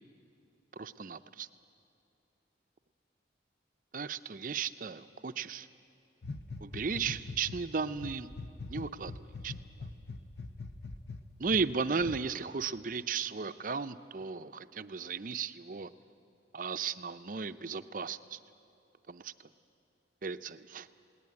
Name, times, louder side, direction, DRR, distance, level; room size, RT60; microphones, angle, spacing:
voice 1, 0.8-1.5 3.9-5.7 6.6-8.3 8.7-9.5 11.4-15.9 16.5-18.4 19.1-19.3 20.2-20.9, right 5 dB, 50° right, 11 dB, 0.6 m, -35 dB
sound 1, 6.2-7.6 8.0-11.7 12.0-12.2, left 3 dB, 75° left, 0.9 m, -42 dB
19.5 x 18.5 x 9.5 m, 2.6 s
head